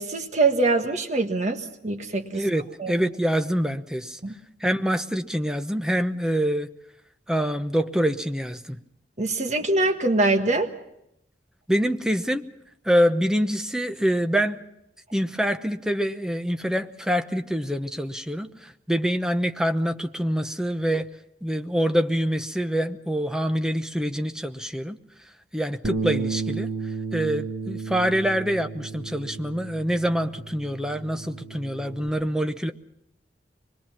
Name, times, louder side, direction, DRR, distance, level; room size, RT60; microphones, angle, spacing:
voice 1, 0.0-2.4 2.8-2.9 4.2-4.3 9.2-10.7, right 3 dB, 40° right, 6 dB, 1.6 m, -23 dB
voice 2, 2.3-4.2 4.6-6.7 7.3-8.8 11.7-12.5 12.8-14.6 15.1-21.1 21.4-25.0 25.5-32.7, equal, 5° right, 7 dB, 0.9 m, -25 dB
Bass guitar, 25.8-32.1, right 4 dB, 85° right, 1.7 m, -33 dB
25.0 x 21.0 x 5.9 m, 0.80 s
head